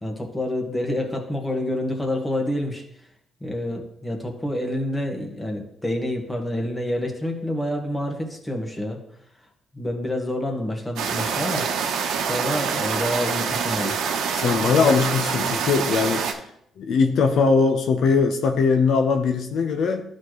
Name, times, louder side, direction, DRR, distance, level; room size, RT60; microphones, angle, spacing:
voice 1, 0.0-3.1 3.4-9.0 9.3-9.5 9.7-11.7 11.9-14.1, left 1 dB, 15° left, 2 dB, 1.6 m, -28 dB
sound 1, 11.0-16.3, right 6 dB, 85° right, 0.9 m, -26 dB
voice 2, 14.3-16.3 16.8-20.0, left 5 dB, 70° left, 5 dB, 0.8 m, -20 dB
11.5 x 4.3 x 3.2 m, 0.72 s
cardioid pair, 90°, 0 cm